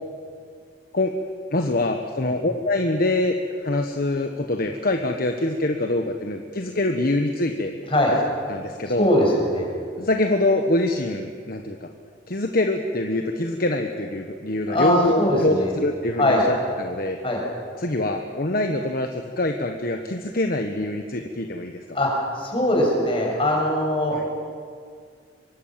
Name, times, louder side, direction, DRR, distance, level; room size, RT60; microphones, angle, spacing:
voice 1, 1.5-3.4 3.6-7.7 8.5-9.1 10.0-11.9 12.3-17.2 17.8-21.7 24.1-24.3, left 2 dB, 50° left, 5 dB, 1.3 m, -24 dB
voice 2, 9.0-9.7 14.7-15.7 16.2-16.4 17.2-17.4 21.9-22.1 22.4-24.2, left 1 dB, 30° left, -1 dB, 6.9 m, -21 dB
25.0 x 23.0 x 7.6 m, 2.1 s
head